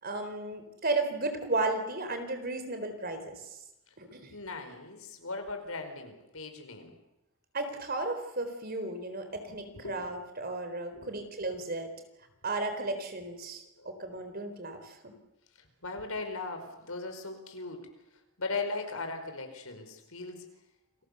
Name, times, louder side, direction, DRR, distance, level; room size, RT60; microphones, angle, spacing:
voice 1, 0.0-3.6 4.0-4.3 7.5-11.9 12.4-15.1, right 2 dB, 45° right, 8 dB, 4.0 m, -34 dB
voice 2, 4.3-7.0 9.7-10.0 10.9-11.1 13.8-13.9 15.6-17.8 18.4-20.4, left 3 dB, 80° left, 6 dB, 5.0 m, -38 dB
29.5 x 22.0 x 7.0 m, 0.93 s
head